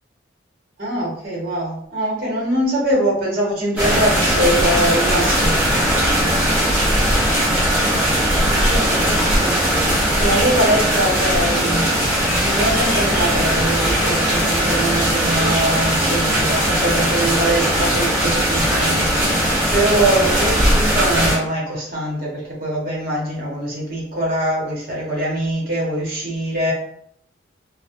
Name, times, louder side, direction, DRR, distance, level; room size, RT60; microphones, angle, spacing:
voice 1, 0.8-5.6 8.4-12.0 12.3-26.7, right 1 dB, 45° right, -5 dB, 0.9 m, -23 dB
sound 1, 3.8-21.4, equal, 10° right, 0.6 m, -18 dB
2.2 x 2.0 x 2.7 m, 0.68 s
head